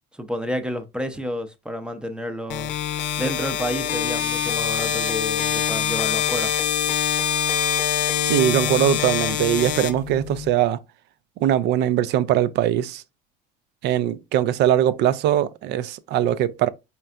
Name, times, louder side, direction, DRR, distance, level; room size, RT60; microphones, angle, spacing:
voice 1, 0.1-2.7 3.2-6.5, equal, 5° right, 0.6 m, -30 dB
sound 1, 2.5-10.5, left 9 dB, 85° left, 0.7 m, -24 dB
voice 2, 8.2-10.8 11.4-13.0 13.8-16.7, right 11 dB, 60° right, 0.4 m, -21 dB
4.3 x 3.3 x 2.4 m
supercardioid pair, 110°, 20 cm